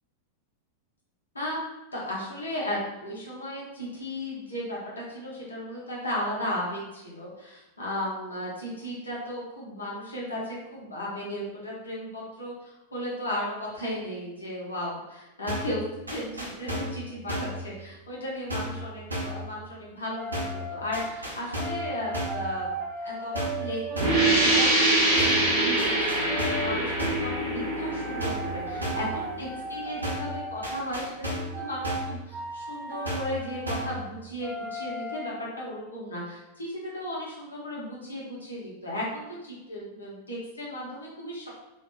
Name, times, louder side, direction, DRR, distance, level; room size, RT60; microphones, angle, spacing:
voice 1, 1.9-15.8 16.1-22.7 23.0-41.5, left 1 dB, 75° left, -5 dB, 0.8 m, -35 dB
sound 1, 15.5-15.8 16.1-17.0 17.3-17.6 18.5-18.8 19.1-19.4 20.3-20.6 20.9-21.9 22.1-22.5 23.3-23.7 24.0-24.3 25.2-25.5 25.8-26.7 27.0-27.3 28.2-28.5 28.8-29.1 30.0-30.3 30.6-31.6 31.8-32.2 33.0-33.4 33.7-34.0, equal, 80° right, 0.6 m, -33 dB
sound 2, 20.1-21.1 21.6-24.6 26.3-26.8 27.5-30.9 31.5-32.0 32.3-33.8 34.4-35.3, right 2 dB, 15° right, 0.5 m, -36 dB
sound 3, 24.0-29.5, right 1 dB, 50° right, 0.7 m, -24 dB
2.5 x 2.1 x 2.3 m, 0.98 s
figure-of-eight pair, 90°, 0 cm